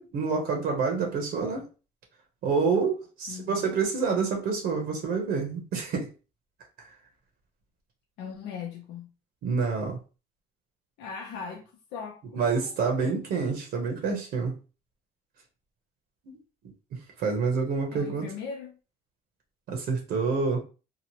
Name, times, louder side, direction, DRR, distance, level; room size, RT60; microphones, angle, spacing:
voice 1, 0.0-1.7 2.4-6.1 6.8-6.9 9.4-10.0 12.3-14.5 16.3-16.4 17.2-18.3 19.7-20.6, right 5 dB, 70° right, 0.9 m, -27 dB
voice 2, 3.3-3.8 8.2-9.1 11.0-12.6 17.9-18.8, left 6 dB, 80° left, 0.6 m, -39 dB
2.9 x 2.1 x 3.0 m
cardioid pair, 110°, 17 cm